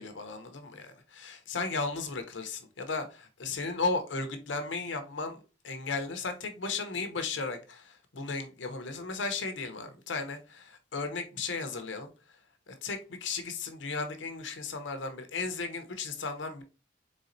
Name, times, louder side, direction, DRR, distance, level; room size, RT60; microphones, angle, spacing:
voice 1, 0.0-12.1 12.7-16.6, left 4 dB, 80° left, 0.7 m, -35 dB
4.0 x 3.5 x 2.6 m
head